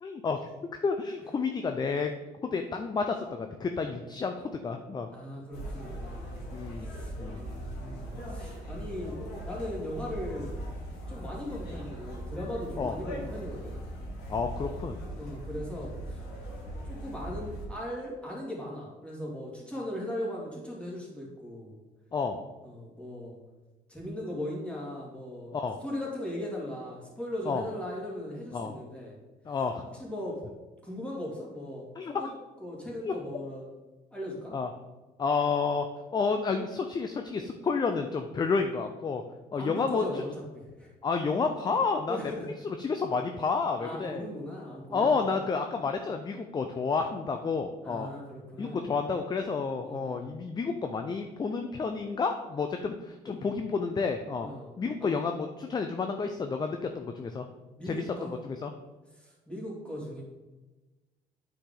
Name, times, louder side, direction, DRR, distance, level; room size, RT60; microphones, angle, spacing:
voice 1, 0.0-0.5 0.8-2.1 2.4-5.1 6.5-6.9 7.2-7.4 12.8-12.9 14.3-15.0 22.1-22.4 25.5-25.8 27.5-27.6 28.5-28.7 29.5-29.8 32.0-32.2 33.0-33.1 34.5-34.7 35.2-35.9 36.1-39.2 39.5-40.0 41.0-42.2 42.6-44.2 44.9-48.1 48.6-54.5 54.8-57.5 57.8-58.7, left 4 dB, 25° left, 6 dB, 0.5 m, -30 dB
voice 2, 5.1-6.5 6.8-9.2 9.5-10.5 11.1-13.9 15.2-16.2 16.8-21.7 22.6-23.4 23.9-25.5 25.8-29.2 30.0-30.4 30.8-32.3 32.6-33.7 34.1-34.5 39.6-40.3 40.5-40.9 42.1-42.5 43.8-45.3 47.8-48.9 49.8-50.2 53.4-53.6 54.4-54.7 55.0-55.1 57.8-58.3 59.2-60.2, left 1 dB, 5° left, -4 dB, 2.5 m, -38 dB
sound 1, 5.5-17.7, equal, 75° left, 2.4 m, -39 dB
8.7 x 5.0 x 3.8 m, 1.2 s
cardioid pair, 110°, 17 cm